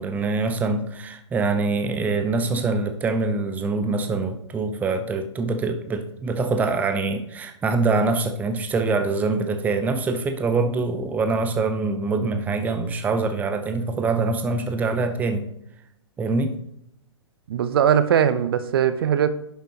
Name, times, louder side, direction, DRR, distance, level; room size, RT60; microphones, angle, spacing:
voice 1, 0.0-15.5 16.2-16.6, right 3 dB, 10° right, 7 dB, 0.7 m, -24 dB
voice 2, 17.5-19.3, right 9 dB, 50° right, 12 dB, 0.7 m, -20 dB
10.5 x 6.8 x 2.9 m, 0.76 s
figure-of-eight pair, 120°, 15 cm